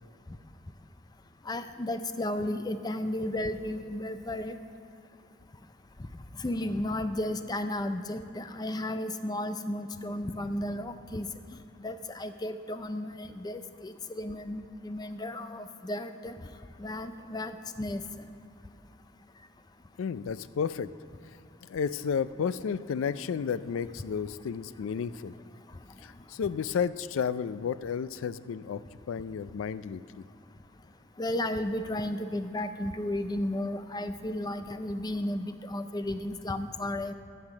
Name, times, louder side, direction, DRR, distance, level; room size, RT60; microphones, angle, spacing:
voice 1, 1.5-4.5 6.4-11.3 11.8-16.3 16.8-18.0 31.2-37.1, left 1 dB, 20° left, 10 dB, 0.5 m, -33 dB
voice 2, 20.0-20.9 21.6-25.3 26.0-28.8 29.1-30.2, left 6 dB, 85° left, 15 dB, 0.3 m, -32 dB
15.5 x 5.8 x 6.0 m, 2.5 s
head